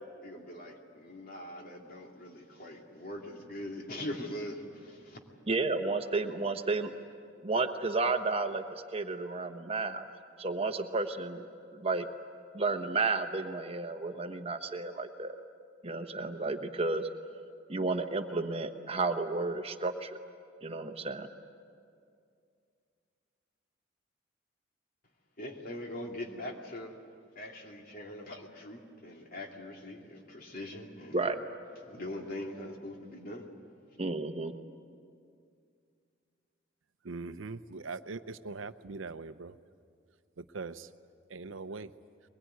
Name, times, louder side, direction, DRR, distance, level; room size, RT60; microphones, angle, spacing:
voice 1, 0.2-5.2 25.4-26.9 27.3-31.2 31.9-33.5, left 1 dB, 50° left, 1 dB, 2.6 m, -42 dB
voice 2, 5.5-6.9 7.4-10.0 10.4-12.1 12.5-15.4 15.8-17.1 17.7-20.2 20.6-21.3 31.1-31.4 34.0-34.5, right 3 dB, 30° right, 7 dB, 1.0 m, -32 dB
voice 3, 37.0-39.6 40.4-40.9 41.3-41.9, right 4 dB, 90° right, 12 dB, 0.7 m, -41 dB
22.5 x 21.0 x 9.4 m, 2.3 s
head